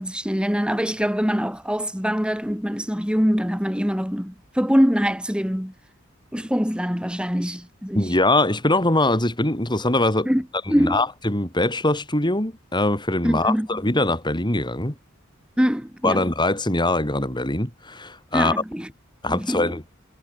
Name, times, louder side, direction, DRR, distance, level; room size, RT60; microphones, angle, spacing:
voice 1, 0.0-5.7 6.3-8.1 10.3-11.0 13.2-13.8 15.6-16.3 18.3-18.9 19.3-19.7, equal, 5° right, 5.9 m, -23 dB
voice 2, 7.9-10.3 10.8-14.9 16.0-18.5 19.2-19.8, left 2 dB, 20° left, 6.2 m, -22 dB
head